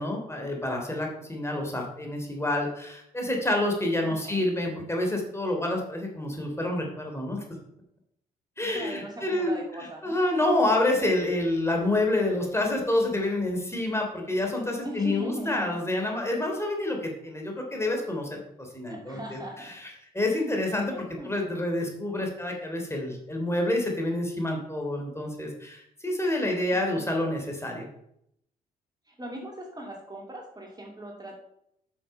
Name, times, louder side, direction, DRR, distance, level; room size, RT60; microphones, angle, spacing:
voice 1, 0.0-7.4 8.6-27.9, left 1 dB, 10° left, 1 dB, 3.1 m, -28 dB
voice 2, 4.0-4.4 8.7-10.2 14.8-15.9 18.9-19.8 20.9-21.5 26.4-26.6 29.1-31.4, right 1 dB, 20° right, 0 dB, 2.6 m, -39 dB
9.2 x 6.4 x 5.5 m, 0.75 s
figure-of-eight pair, 45°, 21 cm